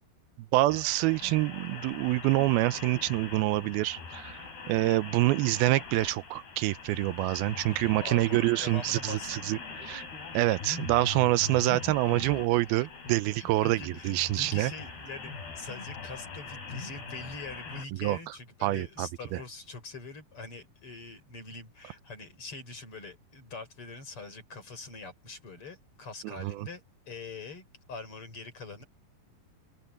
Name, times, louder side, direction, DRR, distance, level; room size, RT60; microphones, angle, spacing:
voice 1, 0.5-4.4 4.7-10.0 10.3-14.7 18.0-18.2 18.6-19.4 26.2-26.7, right 18 dB, 85° right, 2.4 m, -26 dB
sound 1, 0.7-17.8, left 4 dB, 80° left, 8.1 m, -42 dB
voice 2, 7.7-9.6 11.4-12.0 12.5-12.9 13.4-28.8, left 3 dB, 35° left, 6.1 m, -44 dB
open air
omnidirectional pair, 4.5 m